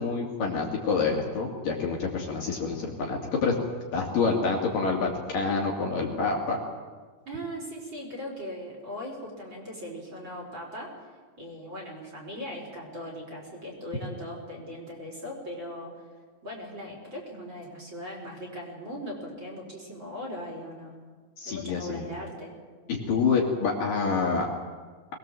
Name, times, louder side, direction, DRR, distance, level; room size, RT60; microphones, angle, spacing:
voice 1, 0.0-3.5 3.9-6.6 21.4-22.1 23.1-24.5, left 4 dB, 55° left, -1 dB, 4.0 m, -27 dB
voice 2, 7.3-10.9 11.4-15.9 16.4-20.9 21.4-22.6, equal, 25° right, -2 dB, 5.5 m, -39 dB
24.0 x 21.0 x 7.7 m, 1.5 s
omnidirectional pair, 4.8 m